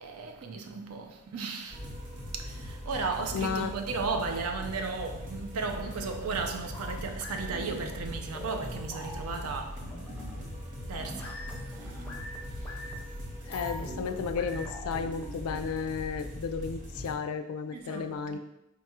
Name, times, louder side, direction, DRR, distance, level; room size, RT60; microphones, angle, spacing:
voice 1, 0.0-1.9 2.3-9.9 10.9-12.9 17.7-18.4, right 4 dB, 70° right, 0.5 m, -35 dB
sound 1, 1.7-17.1, equal, 35° right, 0.7 m, -41 dB
voice 2, 3.3-3.7 13.5-18.4, left 5 dB, 70° left, 0.3 m, -33 dB
sound 2, 6.7-15.8, left 1 dB, 10° left, 0.5 m, -44 dB
3.6 x 2.4 x 4.2 m
head